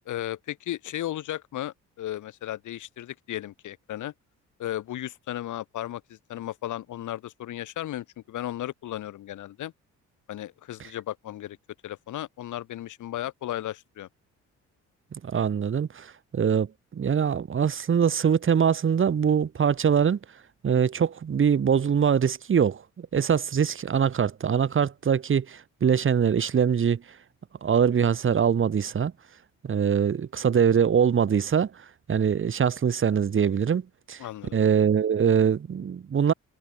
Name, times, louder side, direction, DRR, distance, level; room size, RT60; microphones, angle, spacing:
voice 1, 0.1-4.1 4.6-9.7 10.3-11.6 11.8-14.1 34.2-34.6, left 13 dB, 80° left, 5.0 m, -35 dB
voice 2, 15.1-20.2 20.6-27.0 27.6-29.1 29.6-34.2 34.5-36.3, right 7 dB, 40° right, 1.7 m, -23 dB
cardioid pair, 90°, 30 cm